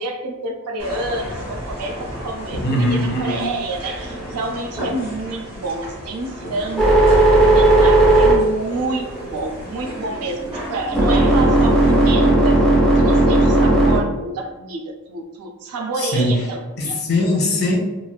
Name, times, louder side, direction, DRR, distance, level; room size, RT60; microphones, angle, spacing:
voice 1, 0.0-12.6 13.0-17.0, right 2 dB, 80° right, 3 dB, 0.4 m, -28 dB
sound 1, 0.8-12.1, equal, 25° right, 1.1 m, -33 dB
voice 2, 2.6-3.5 16.0-16.4 16.8-17.8, left 1 dB, 45° left, -2 dB, 0.6 m, -20 dB
sound 2, 6.8-9.4 9.9-14.0, right 2 dB, ahead, 0.6 m, -15 dB
3.0 x 2.4 x 2.3 m, 1.2 s
head